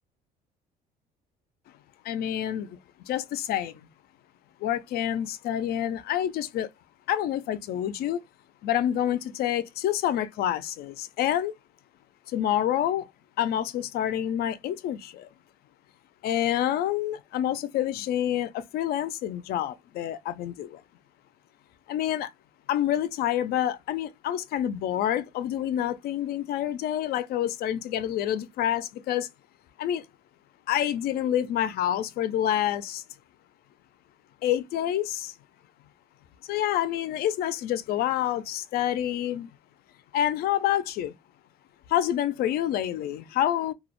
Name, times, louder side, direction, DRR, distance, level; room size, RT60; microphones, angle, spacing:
voice 1, 2.1-2.8 3.1-3.7 4.6-6.7 7.1-8.2 8.6-11.5 12.3-13.1 13.4-15.3 16.2-20.8 21.9-22.3 22.7-29.3 29.8-30.0 30.7-33.0 34.4-35.3 36.5-39.5 40.1-41.1 41.9-43.7, left 11 dB, 65° left, 0.4 m, -27 dB
2.2 x 2.1 x 2.9 m
cardioid pair, 110°, 17 cm